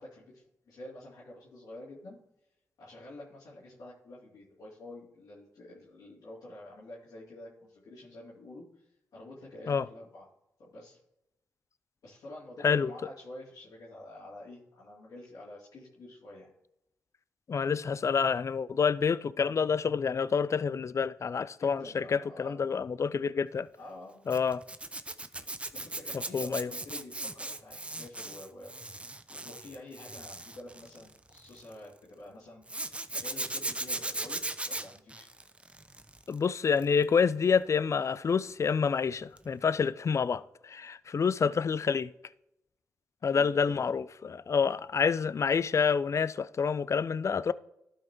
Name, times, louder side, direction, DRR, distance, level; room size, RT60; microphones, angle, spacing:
voice 1, 0.0-2.2 2.8-10.3 10.6-11.0 12.0-16.5 21.6-22.7 23.8-24.4 25.7-35.3 41.4-41.6 43.2-43.9, left 1 dB, 80° left, 2.7 m, -48 dB
voice 2, 17.5-23.7 24.3-24.6 26.3-26.7 36.3-42.1 43.2-47.5, left 6 dB, 50° left, 0.4 m, -28 dB
Zipper (clothing), 24.3-31.7 32.7-36.3 36.7-37.0 39.4-39.5 39.8-39.9, right 2 dB, 20° right, 0.7 m, -38 dB
12.0 x 5.5 x 3.0 m
supercardioid pair, 50°, 7 cm